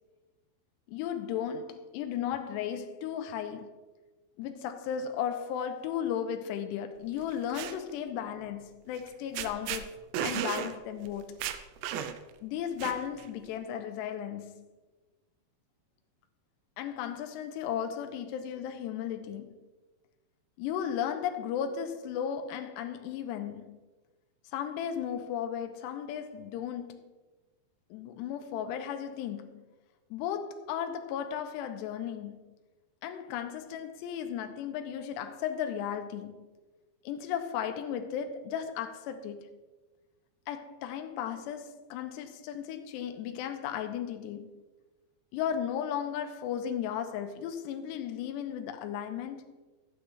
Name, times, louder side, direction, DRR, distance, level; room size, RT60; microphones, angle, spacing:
voice 1, 0.9-3.8 4.4-11.4 12.4-14.7 16.8-19.6 20.6-23.8 24.5-27.1 27.9-29.6 30.1-32.5 33.0-36.5 37.0-39.5 40.5-44.6 45.3-49.5, left 9 dB, 85° left, 2.8 m, -35 dB
sound 1, 7.2-7.7 9.0-9.1 9.3-9.8 10.1-10.7 11.1-11.2 11.4-12.3 12.8-13.3, right 10 dB, 85° right, 2.9 m, -34 dB
13.0 x 9.2 x 3.2 m
omnidirectional pair, 5.0 m